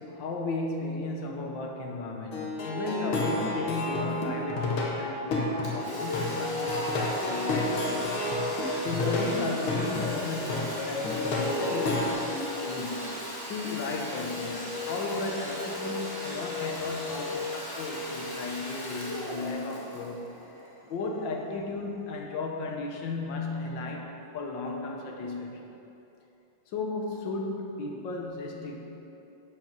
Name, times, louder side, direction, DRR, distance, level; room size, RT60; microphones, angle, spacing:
voice 1, 0.0-8.1 8.8-13.1 13.5-20.3 20.8-25.5 26.7-28.8, left 3 dB, 65° left, 1 dB, 1.6 m, -35 dB
Plucked string instrument, 2.3-12.1, left 2 dB, 85° left, 2.1 m, -30 dB
Domestic sounds home sounds, 5.6-21.1, left 1 dB, 15° left, 1.1 m, -36 dB
8.1 x 6.2 x 5.9 m, 2.9 s
omnidirectional pair, 2.3 m